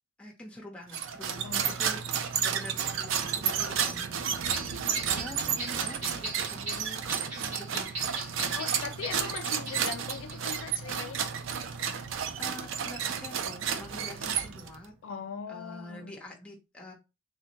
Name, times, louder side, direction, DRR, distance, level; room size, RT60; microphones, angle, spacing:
voice 1, 0.2-4.5 4.8-8.6 12.4-14.9 15.5-16.9, left 1 dB, 5° left, 0.8 m, -46 dB
sound 1, 0.9-14.8, right 7 dB, 65° right, 0.4 m, -32 dB
voice 2, 1.4-1.8 8.5-11.2 15.0-16.2, left 6 dB, 70° left, 0.3 m, -40 dB
sound 2, 4.5-11.0 11.4-11.6, right 2 dB, 85° right, 1.8 m, -40 dB
3.4 x 2.1 x 2.9 m
head